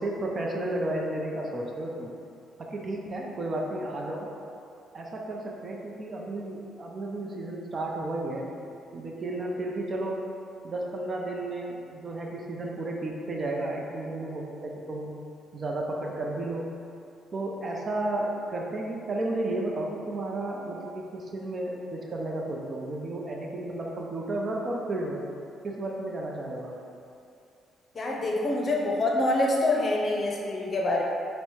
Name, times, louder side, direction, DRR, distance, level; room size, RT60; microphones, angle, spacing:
voice 1, 0.0-2.1 2.6-4.3 4.9-8.5 8.9-10.2 10.6-15.1 15.5-16.7 17.3-25.2 25.6-26.8, right 2 dB, 40° right, -1 dB, 0.6 m, -32 dB
voice 2, 27.9-31.0, left 2 dB, 40° left, -1 dB, 0.6 m, -26 dB
4.1 x 2.1 x 4.5 m, 2.5 s
cardioid pair, 90°, 0 cm